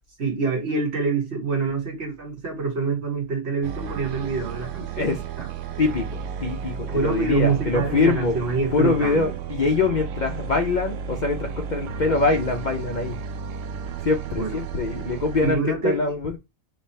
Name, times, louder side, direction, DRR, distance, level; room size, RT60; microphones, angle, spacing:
voice 1, 0.2-5.1 5.4-5.5 6.9-9.4 14.4-14.6 15.4-16.0, right 4 dB, 60° right, 1.6 m, -26 dB
sound 1, 3.6-15.5, right 7 dB, 80° right, 0.9 m, -33 dB
voice 2, 6.4-8.4 8.7-13.2 14.0-16.4, left 3 dB, 50° left, 0.6 m, -24 dB
3.3 x 3.3 x 4.2 m
omnidirectional pair, 1.3 m